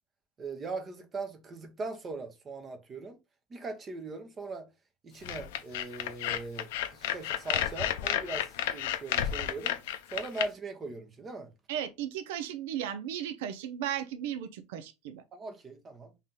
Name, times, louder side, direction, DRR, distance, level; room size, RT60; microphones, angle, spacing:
voice 1, 0.4-3.2 3.5-4.7 5.0-9.8 10.1-11.5 15.3-16.1, right 3 dB, 25° right, 0.8 m, -40 dB
sound 1, 5.2-10.5, left 11 dB, 85° left, 0.5 m, -31 dB
voice 2, 11.7-15.2, right 10 dB, 85° right, 0.5 m, -35 dB
3.2 x 2.8 x 3.7 m
supercardioid pair, 150°, 0 cm